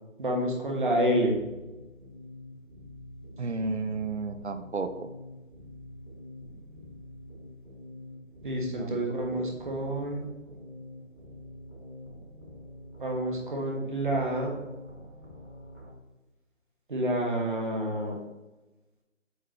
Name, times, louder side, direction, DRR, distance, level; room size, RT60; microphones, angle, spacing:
voice 1, 0.2-1.4 8.4-10.3 13.0-14.5 16.9-18.2, right 1 dB, 40° right, 0 dB, 1.3 m, -28 dB
sound 1, 1.2-15.9, left 1 dB, 10° right, 1.6 m, -46 dB
voice 2, 3.4-5.1 8.8-9.0 9.3-9.5, right 3 dB, 60° right, 9 dB, 0.7 m, -33 dB
7.9 x 3.7 x 3.3 m, 1.1 s
figure-of-eight pair, 165°, 39 cm